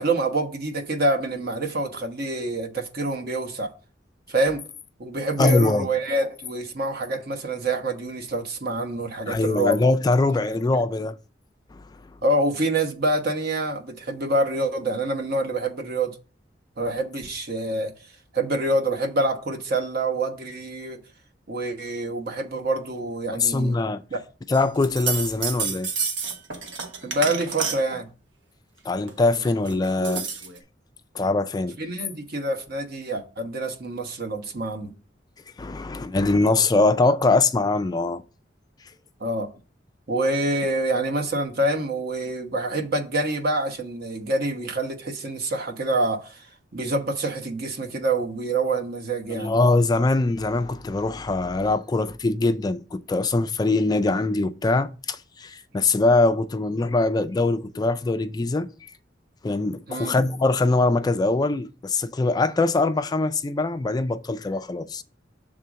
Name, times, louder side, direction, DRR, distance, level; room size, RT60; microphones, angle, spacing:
voice 1, 0.0-3.7 4.3-4.6 5.0-9.9 12.2-16.1 16.8-17.9 18.3-21.0 21.5-23.8 24.1-24.2 27.0-28.1 31.8-34.9 39.2-39.5 40.1-46.5 46.7-49.5 59.9-60.2, right 2 dB, 55° right, 1.1 m, -26 dB
voice 2, 5.4-5.9 9.3-11.2 11.7-11.8 23.3-24.0 24.5-25.9 28.8-30.3 31.1-31.8 35.6-38.2 49.3-58.9 59.4-65.0, left 3 dB, 20° left, 0.3 m, -22 dB
sound 1, 24.5-28.0 29.1-30.6, right 5 dB, 80° right, 1.2 m, -30 dB
6.7 x 3.7 x 6.1 m
head